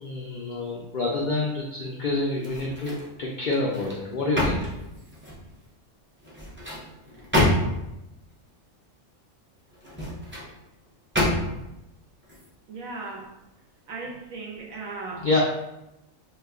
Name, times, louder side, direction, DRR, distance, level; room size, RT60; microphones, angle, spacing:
voice 1, 0.0-4.6 15.2-15.4, left 2 dB, 80° left, -3 dB, 0.4 m, -27 dB
sound 1, 2.4-3.1 3.5-5.5 6.2-8.0 9.7-10.5 11.1-11.7 12.2-12.4, left 1 dB, 15° right, 0.4 m, -27 dB
voice 2, 12.7-13.3 13.9-15.4, right 3 dB, 85° right, -1 dB, 1.2 m, -37 dB
2.8 x 2.3 x 3.5 m, 0.91 s
omnidirectional pair, 1.4 m